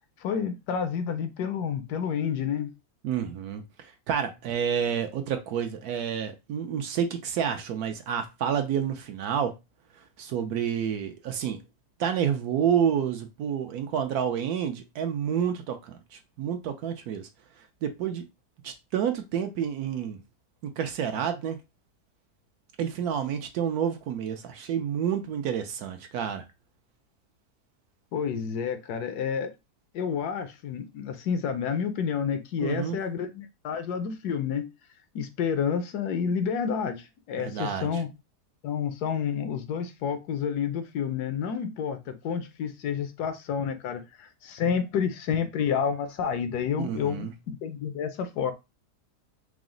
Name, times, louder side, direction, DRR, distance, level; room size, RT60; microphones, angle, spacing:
voice 1, 0.2-2.7 28.1-29.5 29.9-34.7 35.1-38.1 38.6-48.5, left 7 dB, 75° left, 1.1 m, -29 dB
voice 2, 3.0-9.6 10.2-11.6 12.0-17.3 17.8-18.3 18.6-20.2 20.6-21.6 22.8-26.4 32.6-33.0 37.4-38.0 46.8-47.3, right 8 dB, 70° right, 1.0 m, -29 dB
4.9 x 2.0 x 3.7 m
omnidirectional pair, 1.8 m